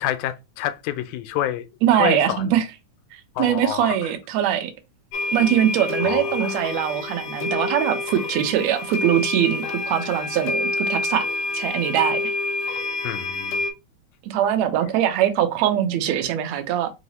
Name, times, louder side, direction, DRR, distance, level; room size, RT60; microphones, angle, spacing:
voice 1, 0.0-1.7 1.9-2.4 3.4-4.1 6.0-6.5 13.0-13.6, left 12 dB, 85° left, 2.0 m, -28 dB
voice 2, 1.8-2.7 3.1-4.7 5.3-11.3 11.5-12.3 14.2-16.9, right 11 dB, 80° right, 1.8 m, -22 dB
sound 1, 5.1-13.7, left 3 dB, 70° left, 1.9 m, -27 dB
4.7 x 2.0 x 4.0 m
omnidirectional pair, 3.3 m